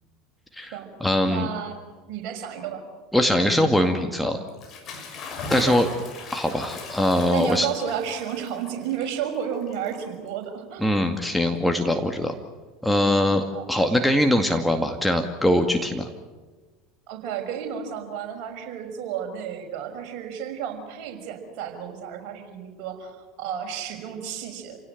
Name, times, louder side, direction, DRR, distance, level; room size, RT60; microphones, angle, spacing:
voice 1, 0.6-1.5 3.1-4.4 5.5-5.9 6.3-7.7 10.8-12.3 12.8-16.1, left 1 dB, 5° left, 4 dB, 2.1 m, -22 dB
voice 2, 1.3-1.7 2.1-2.8 5.6-5.8 7.3-10.9 13.5-13.7 17.1-24.8, right 8 dB, 50° right, 2 dB, 5.9 m, -32 dB
Bathtub (filling or washing) / Splash splatter, 4.5-10.4, left 3 dB, 40° left, 6.1 m, -39 dB
28.5 x 17.5 x 9.1 m, 1.3 s
figure-of-eight pair, 75°, 0 cm